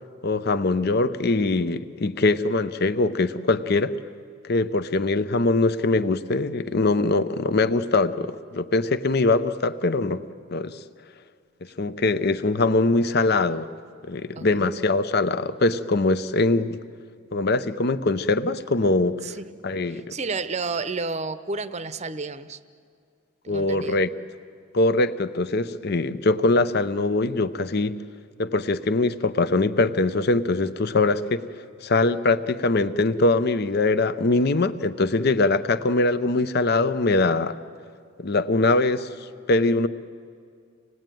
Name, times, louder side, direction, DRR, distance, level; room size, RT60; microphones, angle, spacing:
voice 1, 0.2-4.0 4.5-10.2 10.5-10.8 11.8-13.7 14.1-16.8 17.3-19.2 19.6-20.0 23.5-24.1 24.7-27.9 28.4-31.4 31.8-37.6 38.2-39.1 39.5-39.9, left 2 dB, 50° left, 13 dB, 0.7 m, -22 dB
voice 2, 14.4-14.7 19.2-19.5 19.8-22.6 23.4-24.0, right 4 dB, 35° right, 12 dB, 0.7 m, -31 dB
26.0 x 19.0 x 9.1 m, 2.3 s
head